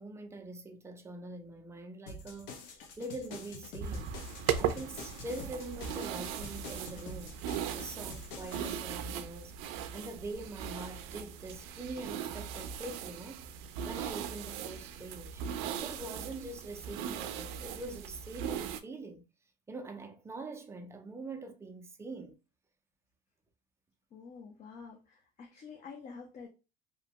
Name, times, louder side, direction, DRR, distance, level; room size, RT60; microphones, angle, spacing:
voice 1, 0.0-2.6 3.0-4.1 4.6-7.4 7.7-9.5 9.9-13.6 13.8-19.2 19.7-22.4, right 2 dB, 15° right, 0.4 m, -44 dB
sound 1, 2.1-8.7, left 3 dB, 85° left, 0.7 m, -47 dB
sound 2, 3.8-18.8, right 8 dB, 85° right, 0.4 m, -38 dB
voice 2, 24.1-26.5, left 5 dB, 40° left, 0.6 m, -48 dB
2.8 x 2.2 x 2.8 m
cardioid pair, 130°, 18 cm